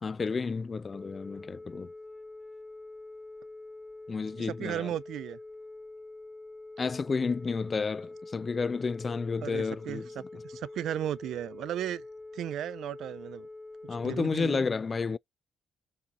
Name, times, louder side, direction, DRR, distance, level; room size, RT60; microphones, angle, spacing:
voice 1, 0.0-1.9 4.1-4.9 6.8-10.4 13.9-15.2, left 4 dB, 35° left, 0.4 m, -31 dB
Telephone, 0.9-14.1, left 2 dB, 15° left, 0.8 m, -45 dB
voice 2, 4.4-5.4 9.4-10.0 10.4-12.0 12.3-13.5 14.0-14.6, right 11 dB, 75° right, 0.5 m, -35 dB
7.1 x 4.1 x 4.1 m
cardioid pair, 90°, 0 cm